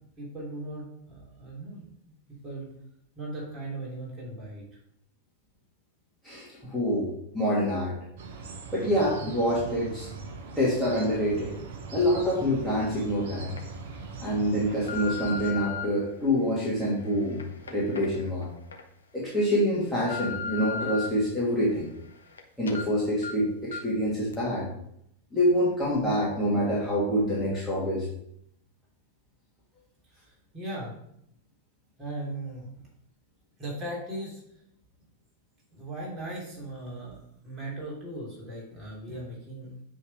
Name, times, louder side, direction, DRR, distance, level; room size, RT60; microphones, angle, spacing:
voice 1, 0.2-1.9 2.4-2.7 3.2-4.6 30.1-30.9 32.0-32.7 33.6-34.4 35.7-37.2 37.4-39.7, right 1 dB, 15° right, -6 dB, 3.0 m, -38 dB
voice 2, 6.2-8.0 8.7-10.1 10.6-11.6 11.9-13.5 14.2-17.4 17.7-18.5 19.1-21.9 22.6-24.7 25.3-28.1, equal, 5° left, -7 dB, 2.3 m, -26 dB
sound 1, 8.2-15.5, right 4 dB, 55° right, 1.0 m, -41 dB
sound 2, 12.6-12.7 13.3-13.6 14.2-15.8 16.5-18.8 19.2-19.3 19.8-21.1 21.5-22.4 22.7-22.8 23.2-23.3 23.7-24.0 24.3-24.4, left 5 dB, 70° left, 1.0 m, -37 dB
8.0 x 3.8 x 4.9 m, 0.72 s
figure-of-eight pair, 90°, 0 cm